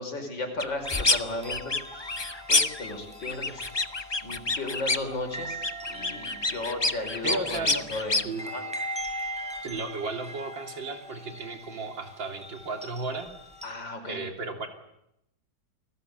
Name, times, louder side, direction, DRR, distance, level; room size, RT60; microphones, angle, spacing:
voice 1, 0.0-3.6 4.2-5.6 5.9-8.2 8.5-8.6 13.6-14.2, left 2 dB, 80° left, 5 dB, 5.9 m, -35 dB
sound 1, 0.6-1.2 1.5-2.9 3.2-5.1 5.4-8.2, left 3 dB, 20° left, 0.6 m, -27 dB
sound 2, 0.8-13.7, right 1 dB, 5° right, 5.8 m, -41 dB
voice 2, 7.2-7.9 8.2-8.5 9.6-13.3 14.0-14.7, right 3 dB, 90° right, 4 dB, 4.0 m, -34 dB
29.5 x 20.0 x 8.2 m, 0.81 s
omnidirectional pair, 2.0 m